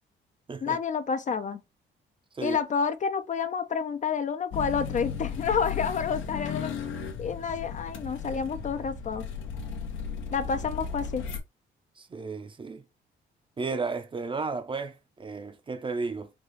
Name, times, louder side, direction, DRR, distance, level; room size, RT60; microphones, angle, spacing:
voice 1, 0.6-1.6 2.4-6.7 7.2-9.3 10.3-11.3, left 6 dB, 40° left, 0.5 m, -29 dB
sound 1, 4.5-11.4, left 6 dB, 75° left, 0.8 m, -35 dB
voice 2, 12.0-12.8 13.6-16.3, right 4 dB, 25° right, 0.5 m, -33 dB
4.0 x 2.3 x 3.1 m
cardioid pair, 90°, 20 cm